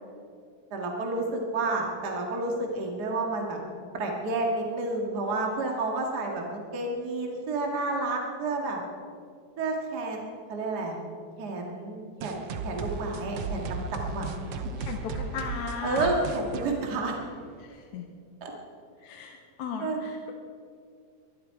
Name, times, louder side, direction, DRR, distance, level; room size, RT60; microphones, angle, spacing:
voice 1, 0.7-8.8 9.6-11.0 11.4-14.3 15.8-17.1 18.4-18.5 19.8-20.0, right 2 dB, 35° right, 0 dB, 2.2 m, -30 dB
sound 1, 12.2-17.7, right 4 dB, 65° right, 1.8 m, -36 dB
voice 2, 14.8-16.1 17.6-18.1 19.0-20.3, left 6 dB, 85° left, 2 dB, 2.3 m, -36 dB
22.5 x 11.5 x 4.7 m, 2.3 s
omnidirectional pair, 3.3 m